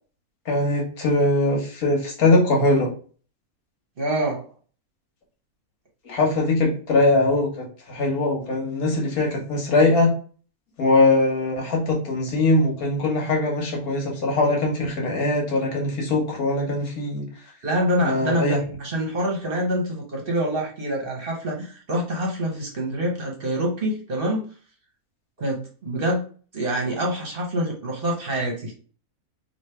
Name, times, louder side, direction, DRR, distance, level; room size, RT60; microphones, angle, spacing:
voice 1, 0.5-2.9 6.0-10.1 10.8-17.3 18.0-18.6, left 2 dB, 80° left, 0 dB, 1.7 m, -21 dB
voice 2, 4.0-4.5 17.6-24.4 25.4-26.2 26.5-28.7, right 1 dB, 40° right, -1 dB, 1.1 m, -26 dB
3.3 x 2.9 x 4.3 m, 0.41 s
omnidirectional pair, 1.5 m